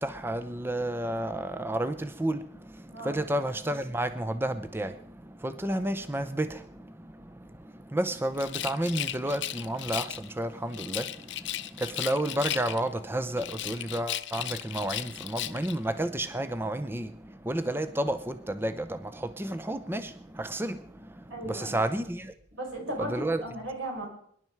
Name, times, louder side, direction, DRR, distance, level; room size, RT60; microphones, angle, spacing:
voice 1, 0.0-22.3 23.0-23.4, right 1 dB, 10° right, 0.6 m, -31 dB
voice 2, 2.9-3.2 21.3-21.8 22.5-24.1, right 1 dB, 70° right, 5.1 m, -36 dB
Rattle, 8.3-10.3 10.7-13.0 13.4-15.8, left 13 dB, 65° left, 0.7 m, -35 dB
24.0 x 11.0 x 4.6 m
head